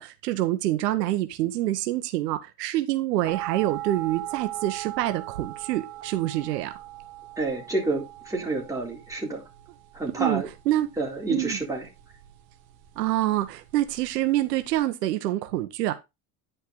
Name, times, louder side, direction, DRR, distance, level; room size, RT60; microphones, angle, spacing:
voice 1, 0.0-6.7 10.2-10.9 11.3-11.6 13.0-15.9, right 14 dB, 90° right, 1.4 m, -26 dB
sound 1, 3.3-14.8, right 16 dB, 50° right, 1.8 m, -40 dB
voice 2, 7.4-9.4 9.9-10.5 11.0-11.8, right 3 dB, 5° right, 3.8 m, -29 dB
10.5 x 5.4 x 3.9 m
supercardioid pair, 130°, 47 cm